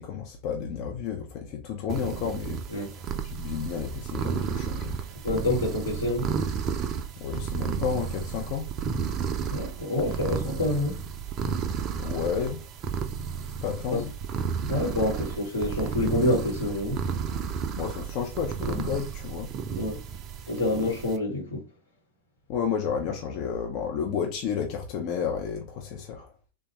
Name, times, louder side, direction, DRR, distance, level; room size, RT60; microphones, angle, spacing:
voice 1, 0.0-5.1 7.2-8.7 12.0-12.6 13.6-14.1 17.7-19.5 22.5-26.3, left 7 dB, 40° left, 0.4 m, -31 dB
sound 1, 1.9-21.2, right 6 dB, 30° right, 0.4 m, -32 dB
voice 2, 5.2-6.3 9.5-11.0 13.9-14.0 14.6-17.0 19.7-20.0 20.5-21.6, left 2 dB, 75° left, 1.0 m, -27 dB
3.2 x 2.2 x 2.9 m
figure-of-eight pair, 90°, 0 cm